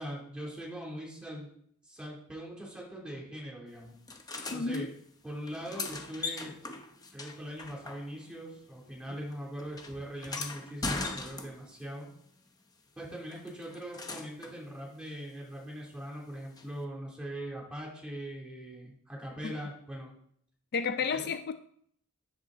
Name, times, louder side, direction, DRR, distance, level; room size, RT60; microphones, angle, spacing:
voice 1, 0.0-1.5 1.8-3.9 4.5-4.9 5.2-6.6 7.1-12.1 13.0-20.1 21.1-21.2, equal, 5° right, -3 dB, 2.9 m, -41 dB
sound 1, 4.1-4.8 5.4-8.4 8.7-11.8 13.3-14.6 16.6-16.7, left 3 dB, 15° left, 0.8 m, -40 dB
voice 2, 4.5-4.9 19.4-19.5 20.7-21.5, left 5 dB, 45° left, 10 dB, 0.4 m, -31 dB
10.0 x 7.2 x 3.9 m, 0.66 s
head